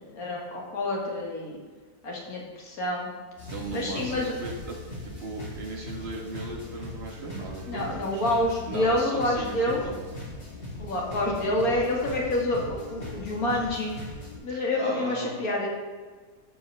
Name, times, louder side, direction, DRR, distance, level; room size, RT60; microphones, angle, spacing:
voice 1, 0.0-1.6 2.0-3.1 3.7-4.4 7.7-9.8 10.8-13.9 14.4-15.7, left 1 dB, 60° left, -2 dB, 2.0 m, -28 dB
sound 1, 3.4-14.4, left 2 dB, 35° left, 2.3 m, -40 dB
voice 2, 3.5-4.8 5.0-8.3 8.7-10.0 14.5-15.3, right 2 dB, 40° right, -1 dB, 1.5 m, -37 dB
6.8 x 4.3 x 6.5 m, 1.4 s
omnidirectional pair, 1.8 m